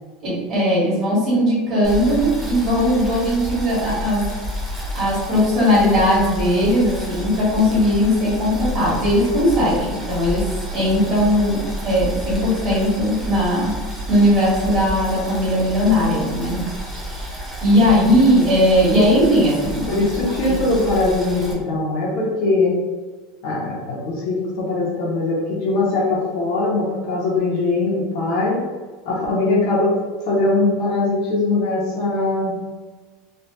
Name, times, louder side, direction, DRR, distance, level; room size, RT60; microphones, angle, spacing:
voice 1, 0.2-4.3 4.9-11.6 11.8-13.8 14.1-16.6 16.9-17.3 17.6-20.1 20.4-20.6, equal, 30° right, -8 dB, 1.5 m, -18 dB
Boiling, 1.8-21.5, equal, ahead, 0.5 m, -30 dB
voice 2, 19.9-22.8 23.4-28.6 29.0-30.0 30.2-32.6, left 2 dB, 50° left, -3 dB, 0.8 m, -21 dB
3.2 x 2.3 x 2.8 m, 1.4 s
supercardioid pair, 175°, 0 cm